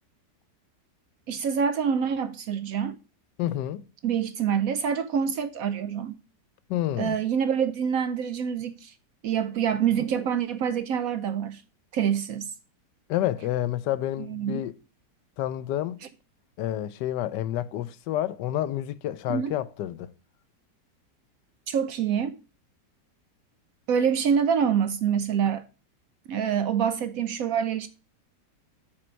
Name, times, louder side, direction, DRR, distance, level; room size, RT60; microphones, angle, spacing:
voice 1, 1.3-3.0 4.0-6.2 7.0-8.9 9.2-11.6 11.9-12.5 14.2-14.6 19.3-19.5 21.7-22.4 23.9-25.6 26.3-27.9, right 7 dB, 70° right, 0.9 m, -26 dB
voice 2, 3.4-3.8 6.7-7.2 13.1-14.7 15.4-16.0 16.6-20.1, left 12 dB, 80° left, 1.2 m, -29 dB
7.7 x 4.1 x 6.2 m
omnidirectional pair, 1.8 m